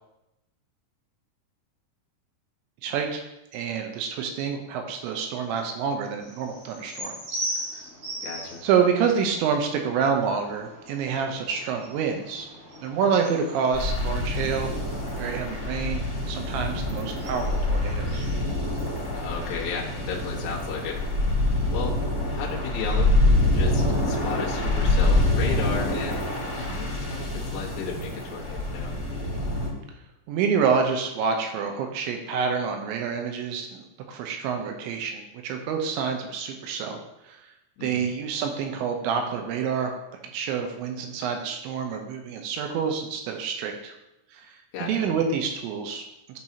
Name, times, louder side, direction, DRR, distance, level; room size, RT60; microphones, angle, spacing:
voice 1, 2.8-3.2 3.5-7.2 8.6-12.5 12.8-14.7 15.2-18.3 30.3-37.0 37.3-37.4 37.8-39.9 40.2-43.9 44.8-46.0, right 6 dB, 80° right, 4 dB, 3.1 m, -27 dB
sound 1, 6.2-25.2, right 1 dB, 45° right, 3.5 m, -41 dB
voice 2, 8.2-8.6 19.1-21.0 21.7-22.0 22.3-23.1 23.5-28.9 37.8-38.1 44.7-45.1, left 6 dB, 70° left, -3 dB, 1.8 m, -34 dB
sound 2, 13.7-29.7, left 2 dB, 20° right, 2.5 m, -26 dB
12.0 x 4.7 x 2.9 m, 0.91 s
omnidirectional pair, 5.3 m